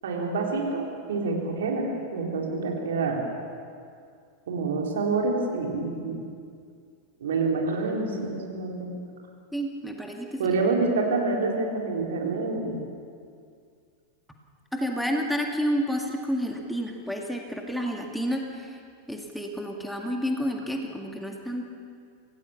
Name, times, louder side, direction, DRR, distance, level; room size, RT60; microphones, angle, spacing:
voice 1, 0.0-3.2 4.5-6.2 7.2-8.9 10.4-12.8, right 3 dB, 60° right, 0 dB, 3.9 m, -27 dB
voice 2, 9.5-10.5 14.7-18.7 19.1-21.6, equal, ahead, 2 dB, 2.0 m, -30 dB
26.0 x 17.5 x 7.2 m, 2.3 s
figure-of-eight pair, 90°, 0 cm